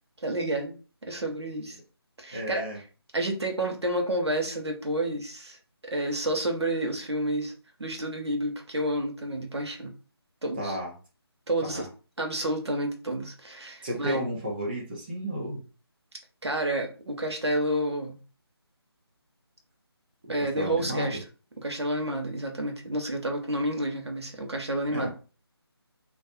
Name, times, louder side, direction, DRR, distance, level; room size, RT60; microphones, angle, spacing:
voice 1, 0.2-0.8 1.1-1.8 2.2-2.6 3.1-5.6 5.8-7.5 7.8-9.9 10.4-10.8 11.5-11.9 12.2-14.2 16.4-18.2 20.3-21.2 21.6-25.1, right 1 dB, 80° right, 2 dB, 0.8 m, -30 dB
voice 2, 2.3-2.8 10.6-10.9 11.6-11.8 13.8-15.6 20.4-21.2 24.9-25.1, equal, 20° right, -2 dB, 0.5 m, -32 dB
2.4 x 2.1 x 2.6 m, 0.36 s
figure-of-eight pair, 160°, 14 cm